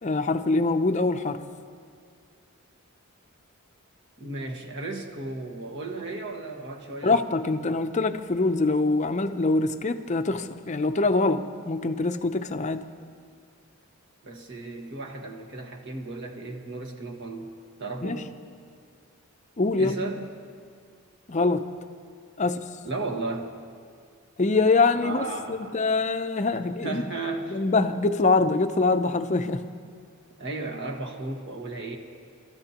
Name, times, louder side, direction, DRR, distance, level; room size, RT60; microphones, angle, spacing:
voice 1, 0.0-1.4 7.0-12.8 18.0-18.2 19.6-20.0 21.3-21.7 22.4-22.6 24.4-27.0 27.5-29.6, left 3 dB, 35° left, 9 dB, 0.6 m, -24 dB
voice 2, 4.2-7.2 14.2-18.3 19.7-20.3 22.8-23.5 24.9-25.8 26.8-27.6 30.4-32.0, right 2 dB, 55° right, 1 dB, 1.6 m, -34 dB
29.0 x 13.5 x 2.9 m, 2.1 s
head